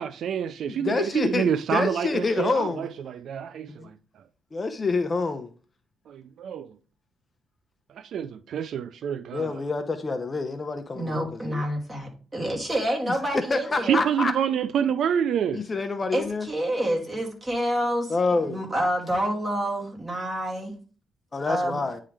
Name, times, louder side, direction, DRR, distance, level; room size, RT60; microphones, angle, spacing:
voice 1, 0.0-3.9 6.1-6.7 7.9-9.5 13.8-15.6, right 8 dB, 70° right, 0.4 m, -27 dB
voice 2, 0.7-2.9 3.7-3.9 4.5-5.5 9.3-11.6 13.1-14.3 15.5-16.5 18.1-18.6 21.3-22.0, left 3 dB, 30° left, 0.7 m, -27 dB
voice 3, 10.9-14.1 16.1-18.1 18.4-20.7 21.5-21.8, right 1 dB, 20° right, 2.4 m, -28 dB
9.7 x 3.7 x 3.3 m
cardioid pair, 90°, 0 cm